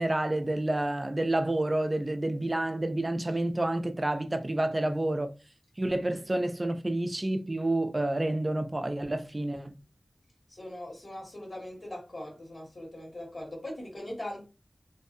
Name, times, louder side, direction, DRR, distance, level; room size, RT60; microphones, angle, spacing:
voice 1, 0.0-5.3 5.8-9.7, right 1 dB, 35° right, 0.4 m, -29 dB
voice 2, 10.5-14.5, left 1 dB, 50° left, 1.5 m, -40 dB
2.6 x 2.2 x 2.5 m
wide cardioid pair, 65°, 0 cm